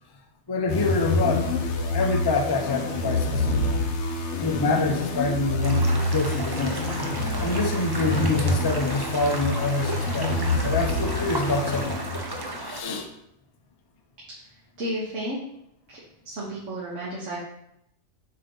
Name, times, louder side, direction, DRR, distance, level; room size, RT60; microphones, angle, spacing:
voice 1, 0.5-1.5 1.9-3.5 4.4-6.8 7.4-10.3 10.6-12.0 12.6-13.1, left 3 dB, 25° left, 3 dB, 0.6 m, -26 dB
sound 1, 0.7-12.4, left 2 dB, 60° left, 1.0 m, -27 dB
sound 2, 5.6-12.8, right 1 dB, 30° right, 0.4 m, -34 dB
voice 2, 14.8-15.4 15.9-16.0 16.2-17.4, right 1 dB, 65° right, -6 dB, 1.5 m, -32 dB
7.3 x 2.9 x 5.3 m, 0.79 s
omnidirectional pair, 1.4 m